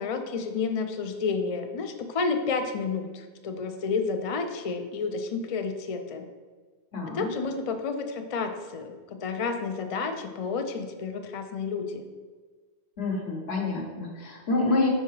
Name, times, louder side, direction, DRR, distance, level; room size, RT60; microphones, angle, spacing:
voice 1, 0.0-6.3 7.1-12.0, left 4 dB, 50° left, 6 dB, 0.4 m, -30 dB
voice 2, 6.9-7.3 13.0-14.9, left 3 dB, 70° left, 0 dB, 1.3 m, -27 dB
5.6 x 4.1 x 4.8 m, 1.4 s
omnidirectional pair, 1.1 m